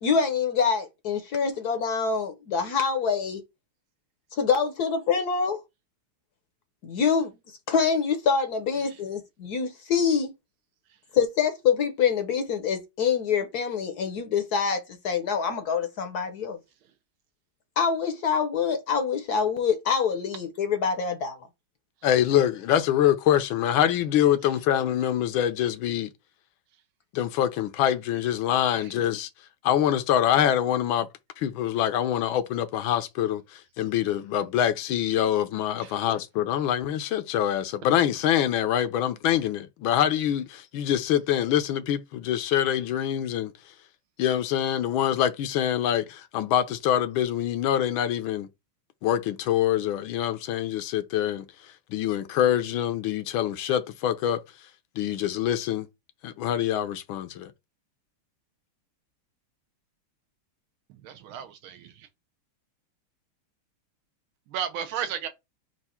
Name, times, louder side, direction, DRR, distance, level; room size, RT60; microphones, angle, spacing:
voice 1, 0.0-3.4 4.3-5.6 6.8-7.3 7.7-10.3 11.1-16.6 17.8-21.4, left 6 dB, 60° left, 1.1 m, -25 dB
voice 2, 22.0-26.1 27.1-29.3 29.6-31.1 31.4-43.5 44.2-48.5 49.0-51.5 51.9-54.4 55.0-55.9 56.2-57.5, left 10 dB, 80° left, 1.4 m, -25 dB
voice 3, 60.9-62.1 64.5-65.3, right 9 dB, 80° right, 1.6 m, -35 dB
4.6 x 2.5 x 4.3 m
omnidirectional pair, 2.3 m